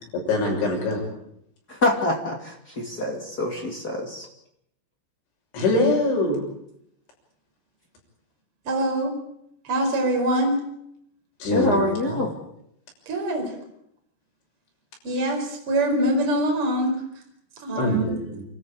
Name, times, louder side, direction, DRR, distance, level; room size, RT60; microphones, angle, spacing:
voice 1, 0.1-1.0 5.5-6.4 11.4-12.2 17.8-18.5, left 2 dB, 60° left, 0 dB, 8.7 m, -24 dB
voice 2, 1.7-4.3 11.5-12.3, left 2 dB, 30° left, 1 dB, 1.8 m, -25 dB
voice 3, 8.6-9.1 9.6-10.6 13.1-13.4 15.0-16.9 17.6-18.1, right 1 dB, 25° right, 2 dB, 5.2 m, -23 dB
29.5 x 13.5 x 8.8 m, 0.76 s
omnidirectional pair, 5.9 m